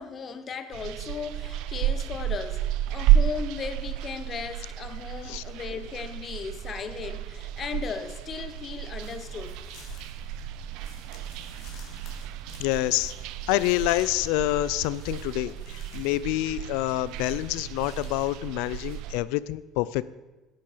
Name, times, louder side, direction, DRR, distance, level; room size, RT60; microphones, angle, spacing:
voice 1, 0.0-9.6, left 6 dB, 30° left, 0.8 m, -36 dB
sound 1, 0.7-19.2, right 11 dB, 70° right, 0.5 m, -31 dB
sound 2, 8.8-19.0, left 3 dB, 55° left, 3.0 m, -51 dB
voice 2, 12.6-13.1 13.5-20.0, left 17 dB, 85° left, 0.5 m, -27 dB
11.0 x 10.5 x 5.0 m
cardioid pair, 150°, 0 cm